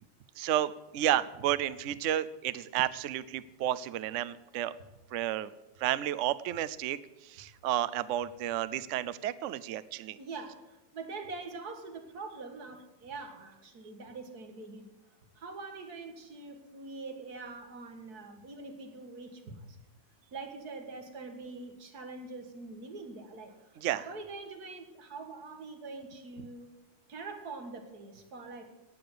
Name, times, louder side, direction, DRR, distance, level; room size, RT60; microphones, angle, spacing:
voice 1, 0.4-4.7 5.1-5.5 5.8-7.0 7.2-10.2 23.8-24.1, right 12 dB, 80° right, 15 dB, 0.6 m, -31 dB
voice 2, 10.2-14.9 15.4-19.8 20.3-26.7 27.1-28.7, right 3 dB, 55° right, 5 dB, 2.2 m, -44 dB
18.0 x 6.8 x 7.9 m, 1.0 s
omnidirectional pair, 2.0 m